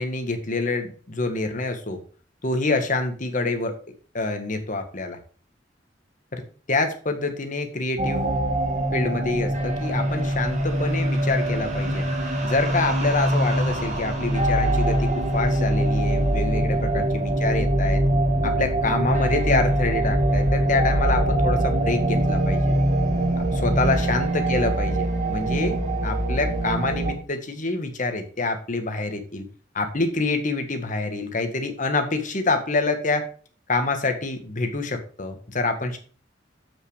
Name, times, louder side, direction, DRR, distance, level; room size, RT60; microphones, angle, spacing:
voice 1, 0.0-2.0 2.4-3.8 4.1-5.2 6.3-6.4 6.7-8.3 8.9-12.1 12.4-18.0 18.4-22.8 23.5-29.5 29.8-33.3 33.7-36.0, left 3 dB, 45° left, 6 dB, 1.7 m, -26 dB
sound 1, 8.0-27.1, right 1 dB, 40° right, 2.6 m, -23 dB
7.7 x 6.4 x 4.9 m, 0.40 s
head